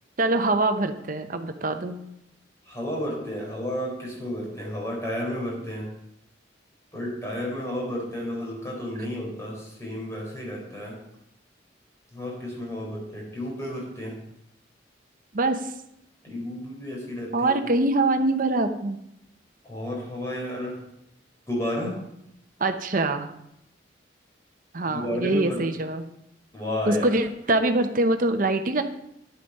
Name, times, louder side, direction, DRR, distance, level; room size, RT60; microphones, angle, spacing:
voice 1, 0.2-2.0 15.3-15.7 17.3-19.0 22.6-23.3 24.7-26.0 26.9-28.8, right 2 dB, 45° right, 7 dB, 0.9 m, -24 dB
voice 2, 2.7-5.9 6.9-11.0 12.1-14.1 16.2-17.5 19.6-20.8 21.5-22.0 24.8-25.6 26.5-27.1, left 1 dB, 15° left, -2 dB, 4.1 m, -32 dB
10.5 x 8.2 x 5.4 m, 0.79 s
head